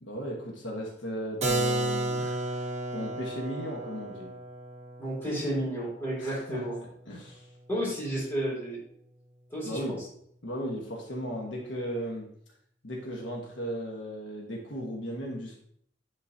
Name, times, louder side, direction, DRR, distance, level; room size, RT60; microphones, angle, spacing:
voice 1, 0.0-2.6 2.9-4.3 6.2-6.7 7.1-7.5 9.6-10.0 10.4-12.3 12.8-15.6, equal, 75° left, -1 dB, 1.3 m, -36 dB
Keyboard (musical), 1.4-7.0, right 2 dB, 35° right, 1.0 m, -33 dB
voice 2, 5.0-6.8 7.7-8.8 9.5-10.0, right 1 dB, 15° left, -6 dB, 2.7 m, -32 dB
9.9 x 3.9 x 2.7 m, 0.67 s
head